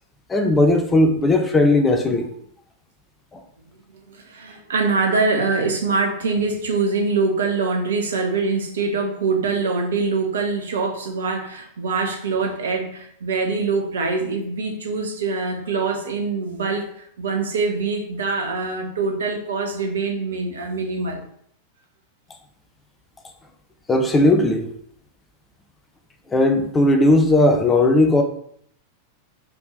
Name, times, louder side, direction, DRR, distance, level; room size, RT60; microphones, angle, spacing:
voice 1, 0.3-2.3 23.9-24.7 26.3-28.2, left 2 dB, 15° left, 5 dB, 1.2 m, -17 dB
voice 2, 3.9-21.2, right 4 dB, 65° right, 3 dB, 1.7 m, -24 dB
5.8 x 5.1 x 6.1 m, 0.65 s
figure-of-eight pair, 90°, 0 cm